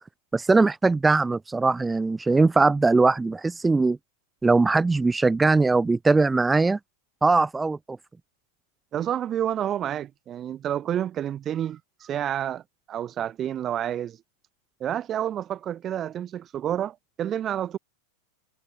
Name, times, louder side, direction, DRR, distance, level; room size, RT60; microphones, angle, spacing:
voice 1, 0.3-4.0 4.4-6.8 7.2-7.8, right 3 dB, 10° right, 6.4 m, -20 dB
voice 2, 8.9-12.6 12.9-14.2 14.8-17.8, right 10 dB, 30° right, 7.4 m, -29 dB
figure-of-eight pair, 90°, 0 cm